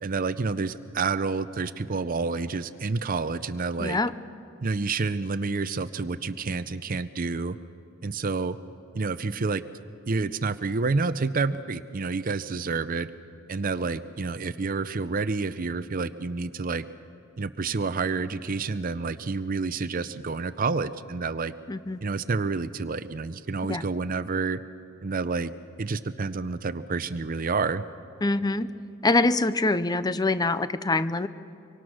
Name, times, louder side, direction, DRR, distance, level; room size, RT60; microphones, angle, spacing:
voice 1, 0.0-4.0 4.6-7.6 8.0-8.6 8.9-9.6 10.1-13.1 13.5-16.8 17.4-21.5 22.0-24.6 25.0-25.5 25.8-27.8, right 4 dB, 40° right, 13 dB, 0.6 m, -29 dB
voice 2, 3.8-4.1 21.7-22.0 23.7-23.8 28.2-28.7 29.0-31.3, left 2 dB, 20° left, 14 dB, 0.5 m, -24 dB
25.0 x 24.0 x 6.2 m, 2.5 s
head